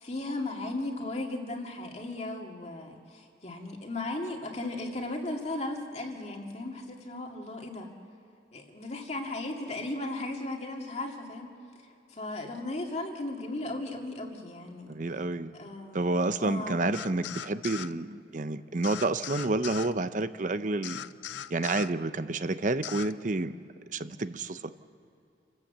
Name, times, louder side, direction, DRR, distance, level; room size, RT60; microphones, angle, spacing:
voice 1, 0.0-7.9 8.5-11.5 12.1-14.9 15.5-16.0 16.4-16.8, left 2 dB, 35° left, 1 dB, 2.1 m, -36 dB
voice 2, 14.9-15.5 15.9-21.0 21.5-23.6 23.9-24.7, right 2 dB, 45° right, 12 dB, 0.7 m, -29 dB
sound 1, 16.9-17.9 18.8-19.9 20.8-21.9 22.8-23.1, left 10 dB, 85° left, 0.5 m, -39 dB
28.5 x 13.5 x 8.2 m, 2.6 s
head